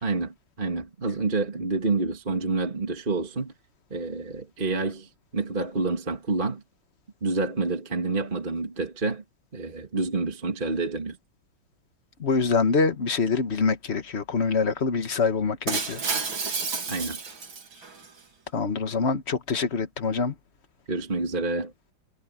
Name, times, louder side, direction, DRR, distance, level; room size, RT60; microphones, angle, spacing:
voice 1, 0.0-3.5 3.9-6.6 7.2-9.2 9.5-11.2 16.9-17.2 20.9-21.7, right 3 dB, 25° right, 2.2 m, -28 dB
voice 2, 12.2-16.0 18.5-20.3, left 4 dB, 35° left, 1.4 m, -25 dB
Shatter, 15.7-18.1, right 4 dB, 70° right, 3.7 m, -30 dB
omnidirectional pair, 2.2 m